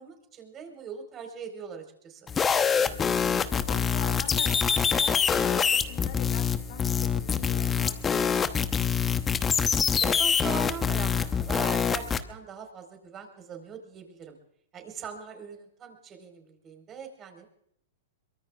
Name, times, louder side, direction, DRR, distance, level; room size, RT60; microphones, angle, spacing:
voice 1, 0.0-2.3 9.9-14.4 14.7-17.5, right 6 dB, 30° right, 5 dB, 4.5 m, -41 dB
sound 1, 2.3-12.2, left 6 dB, 20° left, 0.9 m, -25 dB
voice 2, 3.4-8.6, left 7 dB, 65° left, 6 dB, 3.1 m, -43 dB
23.0 x 22.0 x 2.4 m, 0.68 s
hypercardioid pair, 125°, 0 cm